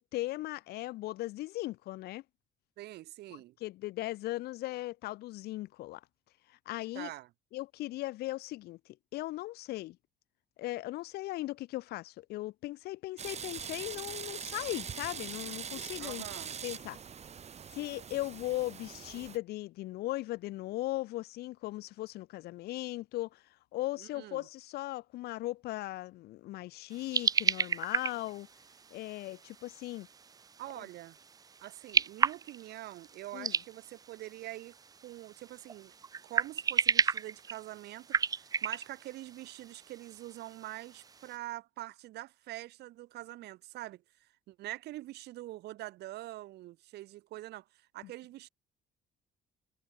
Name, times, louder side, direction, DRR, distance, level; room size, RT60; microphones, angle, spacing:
voice 1, 0.0-2.2 3.6-6.0 6.7-7.1 7.5-8.8 9.1-10.0 10.6-16.2 16.6-17.0 17.7-23.4 23.7-28.5 28.9-30.1 33.3-33.5 48.0-48.1, left 17 dB, 70° left, 0.5 m, -38 dB
voice 2, 2.8-3.5 6.9-7.3 16.0-16.6 24.0-24.5 30.6-31.2 31.6-34.8 35.0-35.9 36.2-48.5, right 16 dB, 80° right, 4.1 m, -45 dB
sound 1, 13.2-19.4, right 7 dB, 40° right, 3.5 m, -42 dB
sound 2, 26.9-41.4, right 5 dB, 20° right, 0.4 m, -34 dB
cardioid pair, 110°, 17 cm